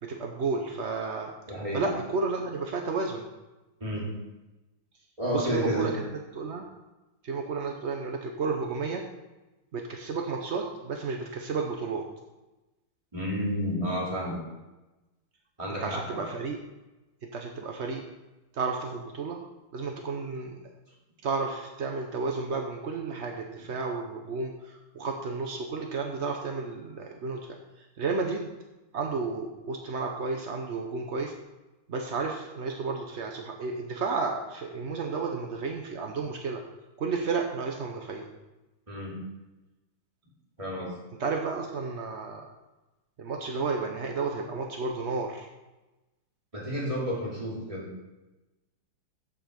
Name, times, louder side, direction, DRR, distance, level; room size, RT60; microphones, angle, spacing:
voice 1, 0.0-1.3 1.7-3.3 5.3-5.9 6.3-6.7 7.2-9.0 9.7-12.0 15.8-16.6 17.3-18.0 18.5-19.4 19.7-20.6 21.2-28.5 28.9-31.3 31.9-36.6 37.0-38.3 41.2-42.5 43.2-45.5, right 4 dB, 60° right, 2 dB, 0.7 m, -32 dB
voice 2, 1.5-1.9 3.8-4.1 5.2-5.9 13.1-14.4 15.6-16.3 38.9-39.2 40.6-41.0 46.5-47.9, equal, 15° right, -5 dB, 2.8 m, -31 dB
13.5 x 5.0 x 5.2 m, 1.1 s
omnidirectional pair, 2.3 m